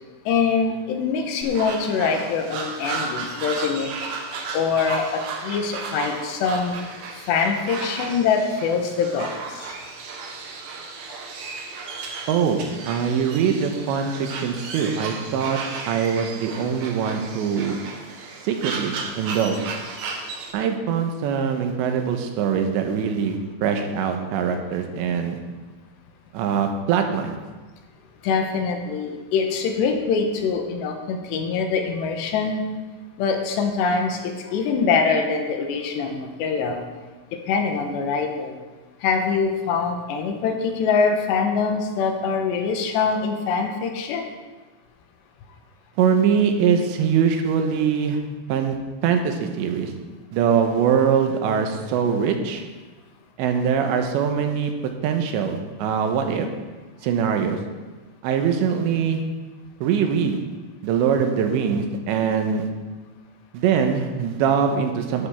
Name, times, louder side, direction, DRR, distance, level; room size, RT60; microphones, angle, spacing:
voice 1, 0.3-3.9 4.5-6.8 7.3-9.7 28.2-32.6 33.2-36.8 37.5-38.6 39.0-44.2, left 5 dB, 75° left, 4 dB, 3.1 m, -24 dB
sound 1, 1.4-20.5, right 4 dB, 65° right, 2.5 m, -34 dB
voice 2, 12.3-15.6 15.9-17.8 18.4-19.6 20.5-25.4 26.3-27.4 46.0-48.2 48.5-48.8 49.0-49.9 50.3-52.6 53.4-54.7 55.0-56.5 57.0-57.6 58.2-59.2 59.8-60.4 60.8-62.7 63.5-65.3, right 7 dB, 80° right, 5 dB, 3.2 m, -22 dB
12.5 x 11.5 x 3.6 m, 1.3 s
omnidirectional pair, 5.1 m